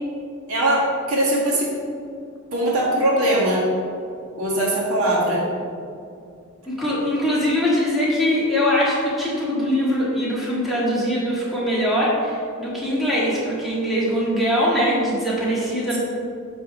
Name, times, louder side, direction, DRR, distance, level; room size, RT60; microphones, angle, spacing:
voice 1, 0.5-1.7 2.5-3.6 4.4-5.4, right 1 dB, 75° right, -4 dB, 1.8 m, -20 dB
voice 2, 6.7-16.0, equal, ahead, -8 dB, 1.8 m, -22 dB
8.9 x 3.5 x 6.0 m, 2.5 s
head